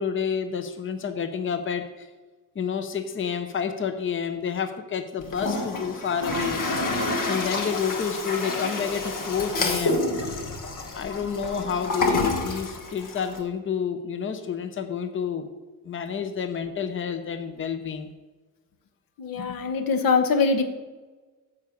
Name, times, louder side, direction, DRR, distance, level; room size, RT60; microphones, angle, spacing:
voice 1, 0.0-2.1 2.5-6.6 7.2-10.0 10.9-15.5 15.8-18.1, left 7 dB, 35° left, 9 dB, 0.7 m, -29 dB
Toilet flush, 5.2-13.4, left 2 dB, 70° left, 1.5 m, -28 dB
voice 2, 19.2-20.6, left 4 dB, 85° left, 7 dB, 1.1 m, -23 dB
9.6 x 4.8 x 7.0 m, 1.3 s
cardioid pair, 120°, 33 cm